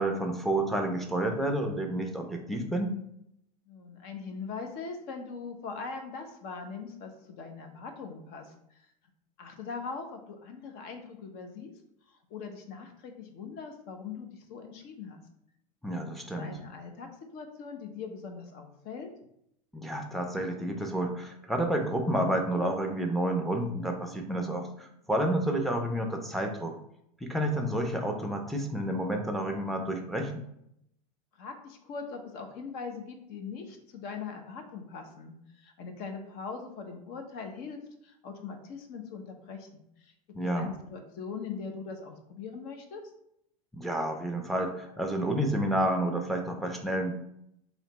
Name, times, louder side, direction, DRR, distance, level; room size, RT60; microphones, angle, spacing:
voice 1, 0.0-2.9 15.8-16.5 19.7-26.8 27.2-30.4 40.3-40.7 43.7-47.1, right 1 dB, ahead, 3 dB, 0.6 m, -30 dB
voice 2, 3.7-8.8 9.4-11.7 12.1-15.2 16.4-19.1 31.4-43.0, left 5 dB, 50° left, 5 dB, 0.8 m, -41 dB
3.2 x 2.9 x 4.2 m, 0.77 s
supercardioid pair, 115°, 20 cm